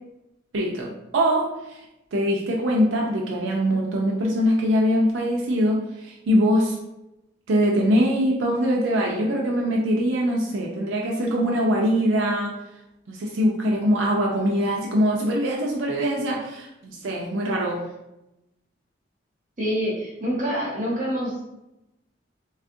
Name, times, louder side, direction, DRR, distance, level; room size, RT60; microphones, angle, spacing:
voice 1, 0.5-1.8 2.1-6.8 7.5-12.5 13.1-17.8, equal, 85° right, -2 dB, 0.5 m, -23 dB
voice 2, 19.6-21.4, equal, 40° right, -5 dB, 0.9 m, -26 dB
3.4 x 2.3 x 2.5 m, 0.89 s
head